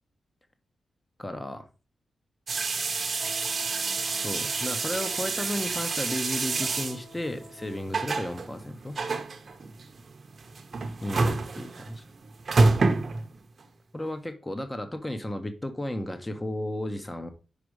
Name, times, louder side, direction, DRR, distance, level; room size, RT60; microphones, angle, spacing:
voice 1, 1.2-1.7 4.1-9.0 11.0-12.0 13.9-17.3, left 1 dB, 10° left, 8 dB, 0.6 m, -34 dB
sound 1, 2.5-13.6, right 3 dB, 40° right, 0.7 m, -28 dB
Wind instrument woodwind instrument, 3.1-7.9, equal, 40° left, 2.4 m, -48 dB
5.2 x 4.9 x 4.7 m, 0.33 s
wide cardioid pair, 165°, 0 cm